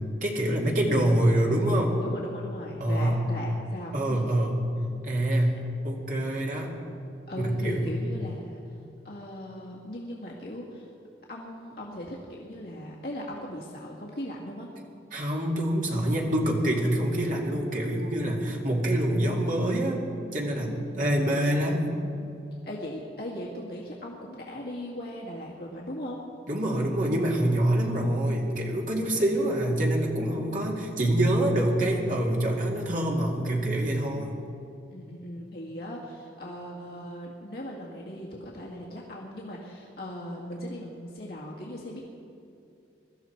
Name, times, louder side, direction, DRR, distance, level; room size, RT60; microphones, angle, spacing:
voice 1, 0.2-2.0 2.8-3.2 3.9-4.5 5.0-6.8 7.4-7.9 15.1-20.0 20.3-21.9 26.5-34.3, right 1 dB, 45° right, -1 dB, 2.3 m, -26 dB
voice 2, 0.9-4.3 7.3-8.6 9.0-10.9 11.3-14.7 15.2-15.3 20.6-21.3 22.6-26.2 29.1-30.0 34.9-42.0, equal, 60° left, -4 dB, 1.9 m, -39 dB
22.5 x 13.0 x 4.6 m, 2.6 s
head